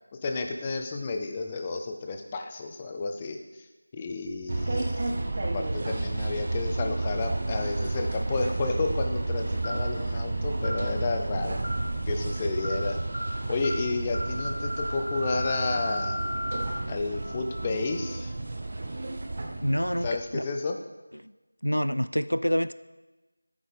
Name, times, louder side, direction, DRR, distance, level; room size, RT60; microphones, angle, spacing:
voice 1, 0.2-3.4 3.9-5.1 5.5-11.6 12.1-13.0 13.5-16.2 16.9-18.3 20.0-20.8, left 3 dB, 15° left, 4 dB, 0.5 m, -31 dB
sound 1, 4.5-20.1, right 2 dB, 35° right, 0.7 m, -31 dB
sound 2, 9.6-9.9 10.6-10.8 11.6-11.9 12.6-12.8 13.1-13.3 13.6-13.8 14.1-16.6, equal, 65° left, 1.5 m, -34 dB
voice 2, 19.6-20.5 21.2-21.3 21.6-22.7, equal, 85° left, 14 dB, 0.3 m, -27 dB
10.0 x 8.8 x 3.4 m, 1.1 s
figure-of-eight pair, 170°, 0 cm